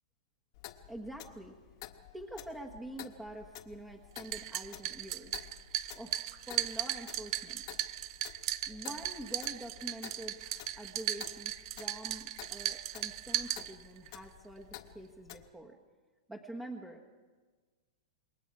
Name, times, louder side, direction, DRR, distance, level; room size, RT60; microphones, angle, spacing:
Clock, 0.5-15.5, left 13 dB, 55° left, 1.6 m, -51 dB
voice 1, 0.9-1.6 2.1-5.5 5.9-7.6 8.7-15.8 16.3-17.1, right 1 dB, 10° right, 0 dB, 1.4 m, -46 dB
sound 1, 4.2-14.1, right 14 dB, 55° right, 0.7 m, -37 dB
28.0 x 22.0 x 4.8 m, 1.4 s
hypercardioid pair, 145°, 3 cm